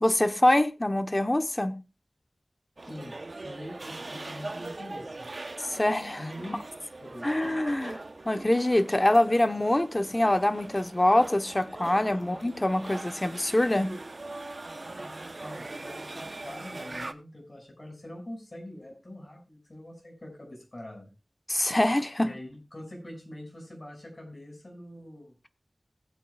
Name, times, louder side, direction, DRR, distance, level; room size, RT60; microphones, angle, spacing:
voice 1, 0.0-1.8 5.6-6.2 7.2-13.9 21.5-22.3, left 1 dB, 30° left, 1.0 m, -25 dB
voice 2, 2.8-3.2 3.4-5.3 6.2-6.6 7.0-7.3 12.2-12.4 14.9-21.1 22.2-25.3, left 1 dB, 50° left, 6.1 m, -44 dB
sound 1, 2.8-17.1, right 2 dB, 65° right, 0.9 m, -41 dB
21.0 x 8.3 x 2.4 m
wide cardioid pair, 55°, 0 cm